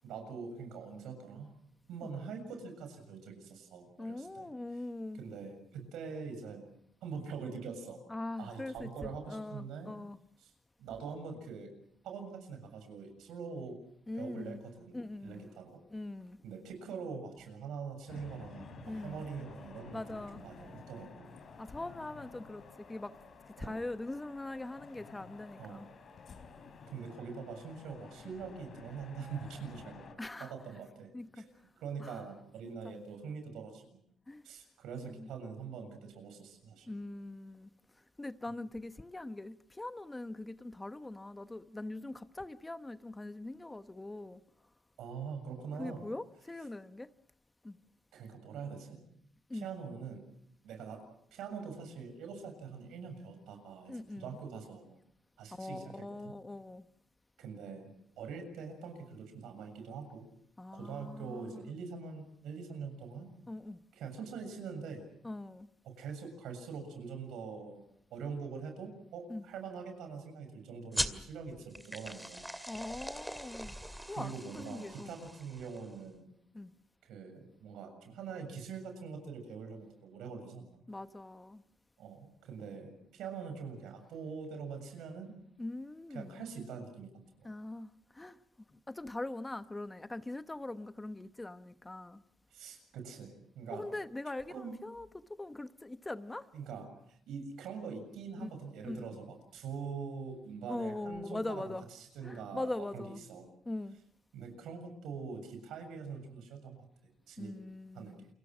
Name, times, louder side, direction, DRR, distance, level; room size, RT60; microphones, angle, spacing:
voice 1, 0.0-1.5 1.9-4.5 5.1-6.7 7.0-8.0 8.4-9.9 10.4-10.5 10.8-11.7 12.0-13.8 14.1-15.8 16.4-20.0 20.3-21.3 23.6-23.8 25.6-25.9 26.9-30.1 30.4-31.1 31.4-33.9 34.4-36.9 45.0-46.1 48.1-49.0 49.5-50.3 50.6-51.0 51.3-54.8 55.4-56.4 57.4-60.2 60.7-63.3 63.9-65.1 65.8-67.8 68.1-72.5 74.1-76.3 77.0-80.8 82.0-85.3 86.1-87.1 87.4-87.5 92.5-93.9 94.5-94.8 96.5-103.5 104.3-107.6 107.9-108.2, right 5 dB, 85° right, 7.1 m, -44 dB
voice 2, 4.0-5.2 8.1-10.2 14.1-14.6 14.9-15.5 15.9-16.4 18.8-19.2 19.9-20.4 21.6-23.1 23.6-25.9 30.2-30.5 31.1-31.5 32.0-32.2 32.8-33.0 34.3-34.4 35.0-35.3 36.9-44.4 45.8-47.1 47.6-47.8 49.5-49.7 53.9-54.4 55.5-56.9 60.6-61.7 63.5-63.8 65.2-65.7 69.3-69.4 72.7-73.8 74.1-75.2 76.5-76.7 80.9-81.6 85.6-86.4 87.4-88.4 88.7-92.2 93.7-96.5 98.4-98.5 98.8-99.1 100.7-101.9 102.2-103.2 103.7-104.0 107.4-108.3, left 2 dB, 15° left, 1.0 m, -42 dB
sound 1, 18.1-30.1, left 5 dB, 55° left, 4.2 m, -52 dB
sound 2, 70.9-76.0, equal, 5° right, 2.2 m, -41 dB
29.0 x 23.5 x 6.1 m
cardioid pair, 90°, 0 cm